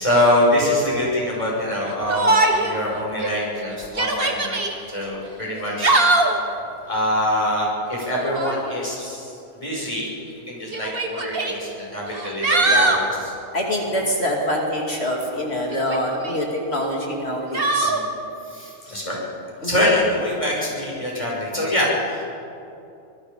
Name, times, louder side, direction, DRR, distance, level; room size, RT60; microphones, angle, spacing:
voice 1, 0.0-4.6 4.9-6.0 6.9-13.3 17.8-18.1 18.5-19.2 19.6-22.2, left 1 dB, 20° left, -4 dB, 6.5 m, -24 dB
Yell, 2.1-2.8 3.2-3.3 3.8-4.7 5.6-6.4 8.2-8.6 9.8-9.9 10.7-11.5 12.1-13.1 15.7-16.4 17.5-18.0, right 2 dB, 40° right, 2.0 m, -21 dB
voice 2, 12.7-13.0 13.5-17.9 18.9-19.0 19.6-19.8, equal, 45° left, 0 dB, 2.8 m, -25 dB
25.5 x 20.5 x 5.4 m, 2.6 s
omnidirectional pair, 1.5 m